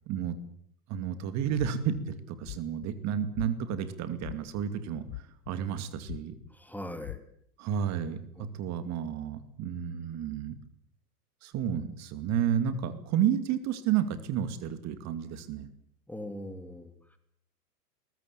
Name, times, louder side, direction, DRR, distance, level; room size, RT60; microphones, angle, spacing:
voice 1, 0.1-0.4 0.9-6.4 7.6-10.6 11.4-15.7, right 9 dB, 35° right, 11 dB, 2.5 m, -31 dB
sound 1, 1.6-2.0 2.4-2.9 3.3-3.8 4.2-4.6 5.1-5.7 6.0-6.5 7.0-7.2, left 19 dB, 40° left, 1.0 m, -40 dB
voice 2, 6.5-7.2 8.4-8.5 16.1-17.2, left 1 dB, 5° left, 8 dB, 2.8 m, -41 dB
22.0 x 20.0 x 8.8 m, 0.67 s
figure-of-eight pair, 105°, 48 cm